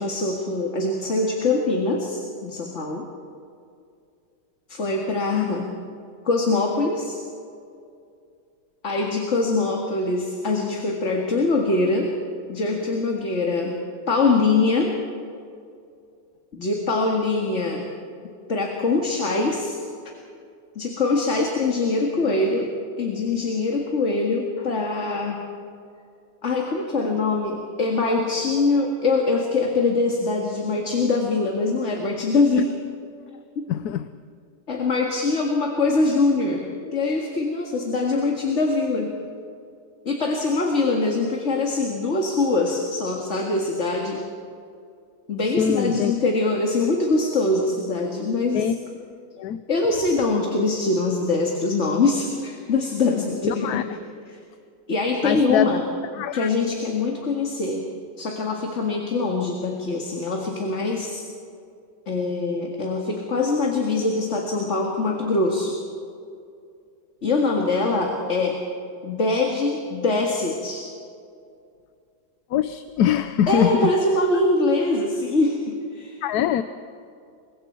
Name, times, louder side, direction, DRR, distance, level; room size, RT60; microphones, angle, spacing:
voice 1, 0.0-3.1 4.7-5.7 6.2-7.2 8.8-12.1 12.5-13.8 14.1-15.0 16.5-17.8 18.5-19.8 20.8-25.4 26.4-32.8 33.6-33.7 34.7-39.2 40.1-44.3 45.3-48.7 49.7-53.9 54.3-54.4 54.9-55.8 56.3-57.9 58.2-61.2 62.1-65.8 67.2-68.6 69.0-70.8 73.5-76.2, left 3 dB, 45° left, 0 dB, 2.2 m, -23 dB
voice 2, 33.7-34.1 45.6-46.1 48.5-48.7 49.4-49.6 53.4-53.8 55.2-55.8 56.1-56.5 72.5-73.9 76.2-76.6, left 10 dB, 70° left, 11 dB, 1.2 m, -23 dB
28.0 x 23.5 x 4.6 m, 2.4 s
omnidirectional pair, 1.8 m